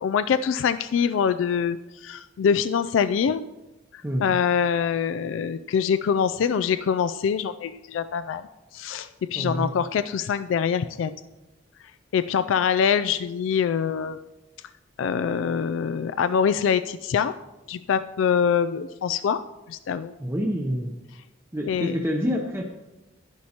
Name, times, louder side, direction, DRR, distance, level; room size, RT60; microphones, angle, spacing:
voice 1, 0.0-3.4 3.9-8.4 8.7-11.1 12.1-14.2 15.0-17.3 17.7-20.1 21.7-21.9, left 7 dB, 80° left, 12 dB, 0.3 m, -24 dB
voice 2, 4.0-4.3 9.3-9.7 20.2-20.9 21.5-22.6, equal, 15° right, 1 dB, 0.7 m, -27 dB
10.5 x 10.5 x 2.9 m, 1.0 s
head